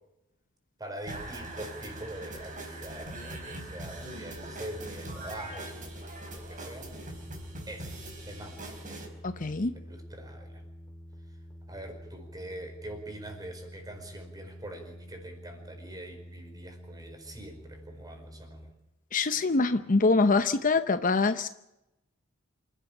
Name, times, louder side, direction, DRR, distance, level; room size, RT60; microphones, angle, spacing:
voice 1, 0.8-5.7 6.3-6.9 7.7-9.0 9.7-10.6 11.7-18.7, right 1 dB, 20° right, 5 dB, 4.9 m, -44 dB
sound 1, 1.1-9.1, right 2 dB, 40° right, 4.5 m, -42 dB
sound 2, 1.4-18.7, equal, 15° left, 3.6 m, -47 dB
voice 2, 9.2-9.7 19.1-21.5, left 3 dB, 40° left, 11 dB, 0.8 m, -24 dB
27.0 x 12.0 x 10.0 m, 0.89 s
head